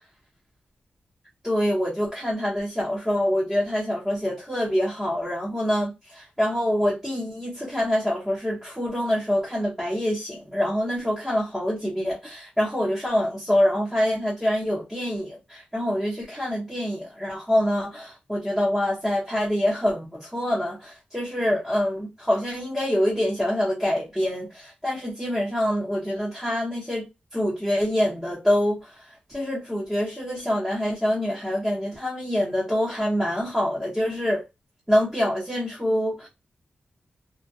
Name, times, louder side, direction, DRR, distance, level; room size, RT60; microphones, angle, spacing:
voice 1, 1.4-34.4 34.9-36.3, equal, 5° right, 0.8 m, -25 dB
2.2 x 2.1 x 2.6 m
wide cardioid pair, 145°, 3 cm